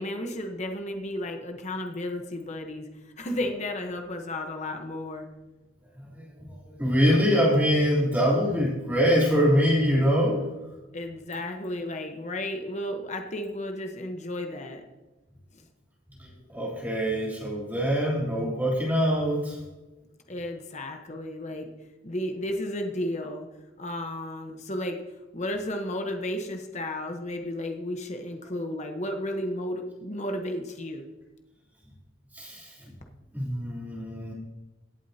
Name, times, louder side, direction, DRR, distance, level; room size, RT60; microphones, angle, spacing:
voice 1, 0.0-2.9 3.2-5.3 10.9-14.8 15.5-15.6 20.3-21.7 22.0-23.5 23.8-25.0 25.3-31.1, left 1 dB, 35° left, 4 dB, 1.1 m, -33 dB
voice 2, 6.0-10.4 16.2-19.6 32.3-32.9 33.3-34.3, equal, 10° right, -7 dB, 3.4 m, -24 dB
17.5 x 8.2 x 2.8 m, 1.1 s
head